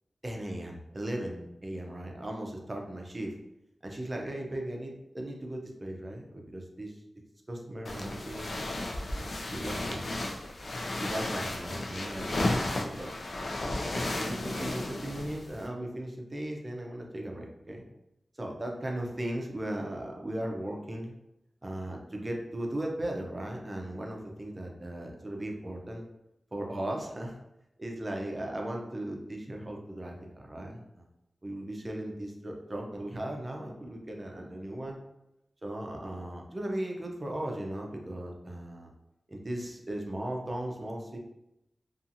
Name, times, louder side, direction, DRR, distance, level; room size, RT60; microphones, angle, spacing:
voice 1, 0.2-3.3 3.8-7.0 7.5-8.6 9.1-10.2 11.0-13.1 14.2-17.8 18.4-21.1 21.6-26.1 26.5-27.4 27.8-31.0 31.4-35.0 35.6-38.9 39.3-41.2, right 1 dB, 30° right, 1 dB, 0.5 m, -37 dB
sound 1, 7.8-15.7, left 2 dB, 65° left, 0.4 m, -34 dB
2.7 x 2.4 x 2.5 m, 0.88 s
wide cardioid pair, 90°, 0 cm